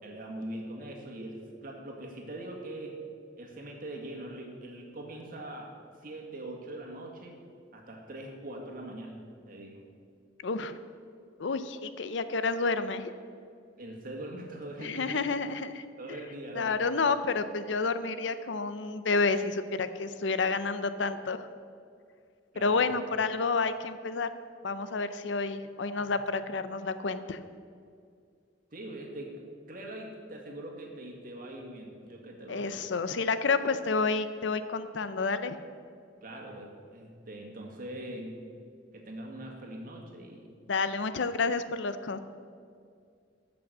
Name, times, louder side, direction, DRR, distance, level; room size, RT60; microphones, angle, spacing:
voice 1, 0.0-3.0 3.4-5.7 6.0-7.4 7.7-9.8 13.8-15.2 16.0-16.9 22.5-23.0 26.0-26.1 28.7-29.4 29.7-32.9 36.2-38.5 38.9-40.5, right 1 dB, 50° right, 1 dB, 1.9 m, -42 dB
voice 2, 10.4-10.8 11.4-13.0 14.8-15.8 16.5-21.5 22.6-24.3 24.6-27.4 32.5-35.6 40.7-42.2, left 4 dB, 75° left, 12 dB, 0.6 m, -30 dB
13.5 x 6.2 x 6.2 m, 2.3 s
head